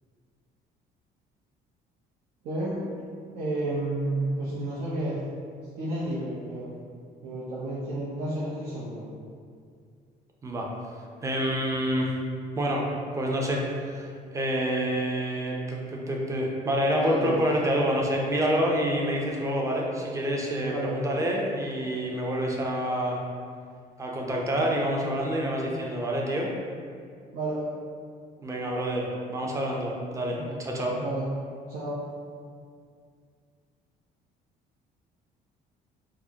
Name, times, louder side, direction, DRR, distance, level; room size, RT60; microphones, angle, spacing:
voice 1, 2.4-2.8 3.3-5.2 5.8-6.7 7.2-9.0 16.9-17.4 20.6-21.0 27.3-27.7 30.3-30.6 30.9-31.2 31.7-32.1, right 1 dB, 75° right, -9 dB, 0.7 m, -31 dB
voice 2, 11.2-12.1 12.6-12.9 13.1-14.1 14.3-23.2 24.0-26.5 28.4-31.0, equal, 20° right, -1 dB, 0.5 m, -27 dB
4.7 x 2.1 x 2.8 m, 2.2 s
cardioid pair, 110°, 17 cm